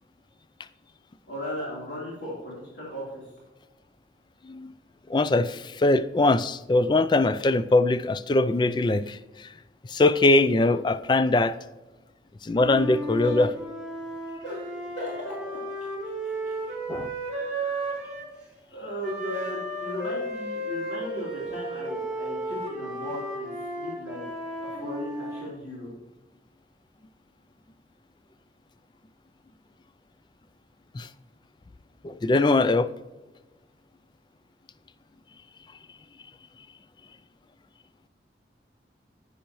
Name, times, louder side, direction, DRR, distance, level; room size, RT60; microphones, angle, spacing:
voice 1, 1.3-3.3 12.5-12.6 13.2-13.5 14.4-15.3 16.0-16.7 17.3-18.1 18.7-24.2 24.6-25.9, left 1 dB, 80° left, 3.5 m, -37 dB
voice 2, 5.1-9.5 9.9-11.6 12.4-13.5 16.9-17.1 30.9-31.1 32.0-32.9, left 2 dB, 25° left, 0.3 m, -22 dB
Wind instrument woodwind instrument, 12.6-18.3 19.0-25.5, right 1 dB, 5° right, 2.7 m, -34 dB
10.0 x 9.8 x 3.0 m
head